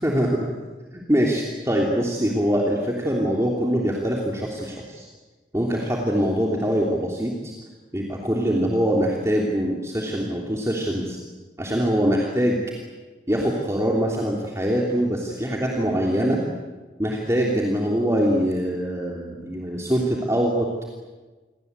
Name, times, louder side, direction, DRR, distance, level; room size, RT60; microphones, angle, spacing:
voice 1, 0.0-0.5 0.9-5.0 5.5-7.5 7.9-11.2 11.6-12.6 13.3-16.4 17.0-20.7, equal, 15° right, -2 dB, 3.2 m, -23 dB
28.0 x 23.5 x 8.3 m, 1.3 s
head